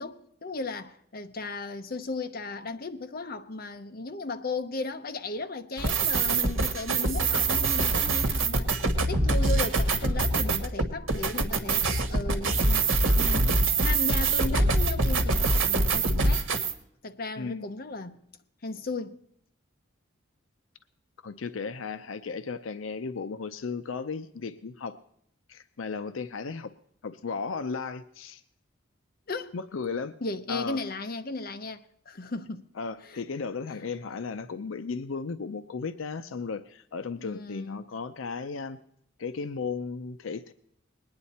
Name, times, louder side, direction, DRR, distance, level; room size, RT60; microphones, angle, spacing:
voice 1, 0.0-8.7 9.0-12.9 13.2-16.5 17.0-18.2 18.6-19.2 29.3-29.5 30.2-32.6 33.0-33.3 37.2-37.8, left 3 dB, 50° left, 0.8 m, -36 dB
sound 1, 5.8-16.7, right 3 dB, 80° right, 1.4 m, -24 dB
voice 2, 17.4-17.7 21.2-25.0 25.5-26.7 27.0-28.4 29.5-30.1 30.5-30.8 32.8-38.8 39.2-40.5, left 5 dB, 80° left, 0.5 m, -35 dB
20.5 x 9.7 x 4.2 m
head